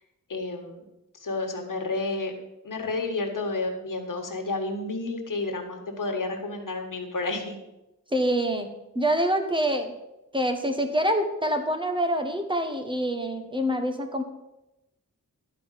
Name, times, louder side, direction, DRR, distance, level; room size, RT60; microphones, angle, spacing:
voice 1, 0.3-0.8 1.2-2.3 2.6-7.6, left 3 dB, 70° left, 3 dB, 1.8 m, -30 dB
voice 2, 8.1-8.7 8.9-9.9 10.3-14.2, equal, 15° right, 6 dB, 1.3 m, -26 dB
11.5 x 5.2 x 7.5 m, 0.97 s
wide cardioid pair, 90°, 33 cm